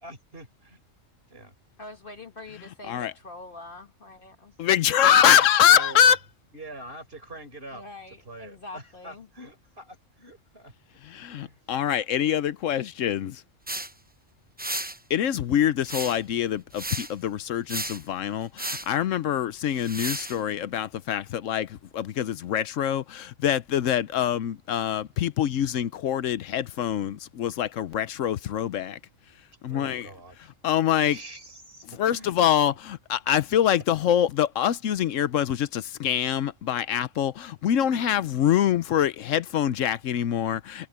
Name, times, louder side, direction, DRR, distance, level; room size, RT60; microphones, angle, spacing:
voice 1, 0.0-0.8 1.3-1.5 5.4-6.1 6.5-7.8 8.3-10.7 11.3-11.6 29.7-30.5 31.0-32.4 32.7-32.8, right 2 dB, 50° right, 5.4 m, -44 dB
voice 2, 1.8-4.6 7.7-9.3, left 2 dB, 45° left, 1.6 m, -44 dB
voice 3, 4.6-6.2 11.0-13.4 15.1-29.0 29.6-30.1 30.6-31.2 32.0-40.9, left 10 dB, 80° left, 1.1 m, -24 dB
sound 1, 13.7-13.9 14.6-15.0 15.8-16.3 16.7-17.1 17.7-18.0 18.6-18.9 19.8-20.4, right 1 dB, 10° right, 0.7 m, -33 dB
omnidirectional pair, 1.3 m